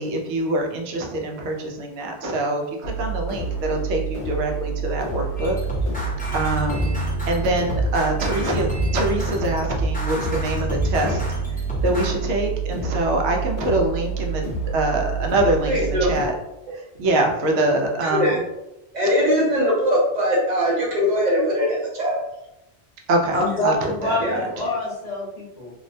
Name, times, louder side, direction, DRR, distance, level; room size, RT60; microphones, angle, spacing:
voice 1, 0.0-5.6 6.3-7.0 7.3-11.2 11.5-14.4 14.7-16.3 16.7-18.4 23.1-23.4 23.6-23.7 24.0-24.4, right 2 dB, 85° right, 1 dB, 0.9 m, -24 dB
sound 1, 2.8-16.3, right 5 dB, 80° left, 0.9 m, -28 dB
sound 2, 5.4-12.2, left 1 dB, 10° left, 0.5 m, -28 dB
voice 2, 15.7-16.1 18.0-18.4 18.9-22.2 24.2-24.4, equal, 45° right, -3 dB, 0.6 m, -21 dB
voice 3, 23.3-25.7, left 1 dB, 45° left, -5 dB, 0.8 m, -25 dB
2.5 x 2.1 x 2.6 m, 0.88 s
omnidirectional pair, 1.1 m